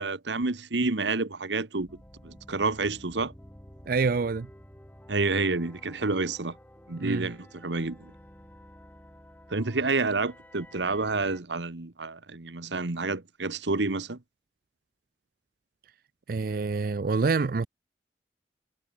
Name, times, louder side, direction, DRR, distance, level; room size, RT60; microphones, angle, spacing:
voice 1, 0.0-1.9 2.2-3.3 5.1-6.5 6.9-8.1 9.5-14.2, right 3 dB, 85° right, 1.3 m, -29 dB
sound 1, 1.8-11.4, equal, 10° left, 2.3 m, -51 dB
voice 2, 3.9-4.5 7.0-7.3 16.3-17.7, right 4 dB, 55° right, 0.4 m, -26 dB
head